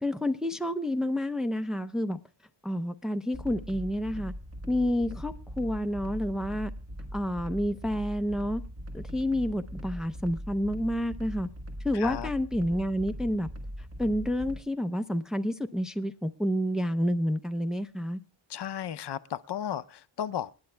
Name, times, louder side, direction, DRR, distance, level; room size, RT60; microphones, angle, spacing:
voice 1, 0.0-2.2 2.6-4.3 4.7-6.7 7.1-8.6 8.9-11.5 11.8-13.5 14.0-18.2, equal, ahead, 0.6 m, -29 dB
sound 1, 3.3-14.6, equal, 30° right, 1.5 m, -40 dB
voice 2, 11.9-12.3 18.5-20.5, left 10 dB, 60° left, 0.6 m, -34 dB
28.5 x 9.7 x 2.2 m
wide cardioid pair, 105°, 46 cm